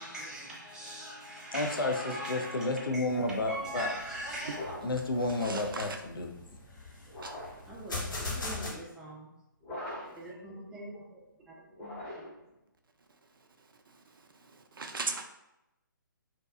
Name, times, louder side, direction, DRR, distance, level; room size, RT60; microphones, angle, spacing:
voice 1, 0.0-2.9 3.1-4.6 7.7-9.3 10.2-11.5 11.8-12.2, equal, 5° right, 0.4 m, -41 dB
voice 2, 1.5-3.9 4.8-6.3, left 2 dB, 80° left, 0.4 m, -31 dB
sound 1, 3.0-8.7, left 2 dB, 65° left, 0.8 m, -41 dB
sound 2, 4.5-5.0 7.1-7.7 9.6-10.3 11.7-12.5, left 1 dB, 15° left, 0.8 m, -42 dB
voice 3, 5.4-5.9 7.2-7.3 14.5-15.2, right 4 dB, 75° right, 0.4 m, -37 dB
2.6 x 2.2 x 2.3 m
figure-of-eight pair, 140°, 11 cm